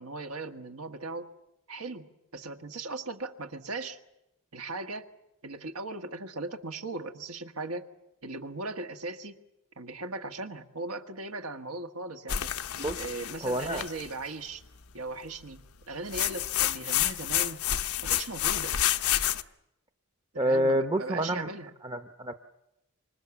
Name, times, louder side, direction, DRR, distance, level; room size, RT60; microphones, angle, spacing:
voice 1, 0.0-1.3 1.7-2.1 2.3-4.0 4.5-5.1 5.4-7.9 8.2-9.3 9.8-12.5 13.0-14.6 14.9-17.6 18.0-18.7 20.3-21.7, right 3 dB, 80° right, 6 dB, 1.6 m, -38 dB
sound 1, 12.3-14.1 16.1-19.4, left 12 dB, 90° left, 0.9 m, -29 dB
voice 2, 13.4-13.8 20.4-21.5 21.8-22.3, right 1 dB, 25° right, 7 dB, 0.9 m, -28 dB
27.0 x 25.5 x 7.1 m, 0.87 s
head